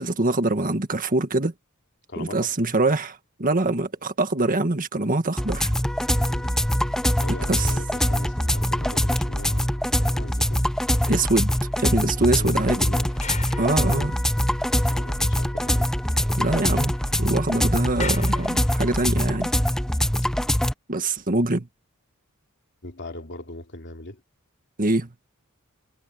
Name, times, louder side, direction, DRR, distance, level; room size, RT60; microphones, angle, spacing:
voice 1, 0.0-1.5 2.2-5.7 7.5-7.7 11.1-11.5 11.8-12.8 13.6-14.1 16.4-16.9 17.2-19.5 20.9-21.7 24.8-25.1, right 2 dB, 40° right, 1.8 m, -24 dB
voice 2, 2.1-2.5 6.1-6.5 7.2-10.7 12.2-13.2 13.5-14.2 14.7-16.0 22.8-24.2, left 1 dB, 55° left, 3.0 m, -39 dB
sound 1, 5.4-20.7, equal, 5° left, 0.6 m, -23 dB
sound 2, 11.1-14.8 15.1-15.2 15.5-15.6 15.9-19.2 19.9-20.1, left 5 dB, 35° left, 6.6 m, -42 dB
head